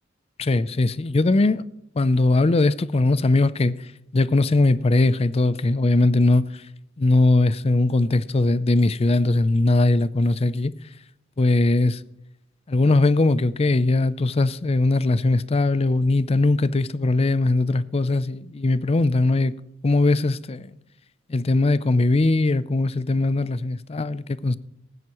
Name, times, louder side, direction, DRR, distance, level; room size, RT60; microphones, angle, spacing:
voice 1, 0.4-1.6 2.0-3.7 4.1-6.4 7.0-10.7 11.4-12.0 12.7-19.5 19.8-20.7 21.3-24.6, left 2 dB, 30° left, 0.4 m, -20 dB
20.0 x 9.6 x 3.0 m
head